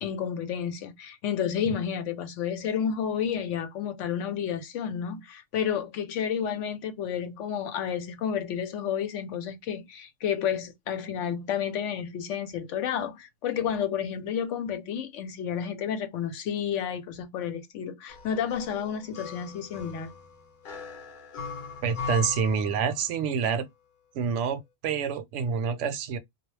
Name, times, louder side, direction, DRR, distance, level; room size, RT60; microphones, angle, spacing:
voice 1, 0.0-20.1, left 8 dB, 75° left, 0.9 m, -31 dB
sound 1, 18.1-23.3, left 5 dB, 50° left, 0.7 m, -40 dB
voice 2, 21.8-23.7 24.1-26.2, right 6 dB, 80° right, 0.9 m, -27 dB
2.3 x 2.0 x 3.1 m
omnidirectional pair, 1.3 m